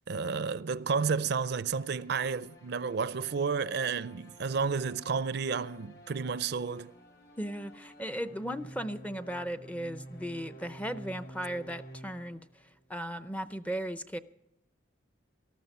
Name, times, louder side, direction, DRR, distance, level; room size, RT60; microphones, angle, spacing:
voice 1, 0.1-6.9, right 5 dB, 55° right, 0.5 m, -31 dB
sound 1, 1.6-12.8, right 1 dB, 55° left, 3.0 m, -51 dB
voice 2, 7.4-12.4 12.9-14.2, equal, 5° left, 0.5 m, -36 dB
18.5 x 13.5 x 5.5 m
head